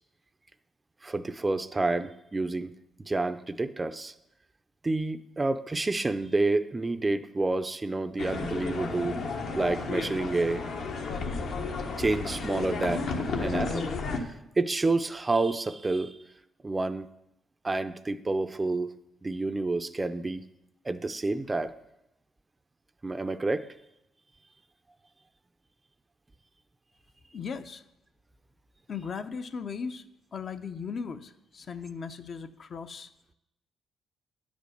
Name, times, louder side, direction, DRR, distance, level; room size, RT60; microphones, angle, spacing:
voice 1, 1.0-2.7 3.0-4.1 4.8-9.2 9.5-10.7 12.0-13.1 13.4-13.9 14.2-16.2 16.6-17.1 17.6-18.9 19.2-20.4 20.8-21.7 23.0-23.7, right 2 dB, 20° right, 11 dB, 0.5 m, -29 dB
sound 1, 8.2-14.2, left 4 dB, 70° left, 1.1 m, -32 dB
voice 2, 27.3-27.8 28.9-33.1, left 6 dB, 50° left, 9 dB, 0.6 m, -37 dB
9.5 x 5.2 x 6.5 m, 0.86 s
cardioid pair, 90°, 0 cm